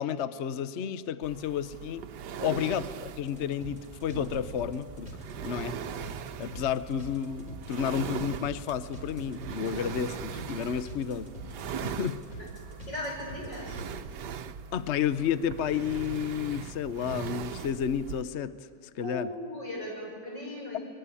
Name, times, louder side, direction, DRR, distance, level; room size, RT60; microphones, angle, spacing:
voice 1, 0.0-2.0 2.4-5.1 5.4-5.8 6.4-11.3 11.7-12.4 14.7-18.7 19.0-19.3, left 8 dB, 50° left, 13 dB, 0.9 m, -31 dB
sound 1, 1.2-18.2, right 7 dB, 75° right, 1.4 m, -40 dB
voice 2, 2.3-2.7 12.4-12.5 12.9-13.8 19.0-20.8, left 1 dB, 85° left, -1 dB, 7.4 m, -38 dB
sound 2, 3.2-13.9, equal, 20° left, 4.3 m, -46 dB
24.5 x 21.5 x 9.9 m, 2.2 s
omnidirectional pair, 1.9 m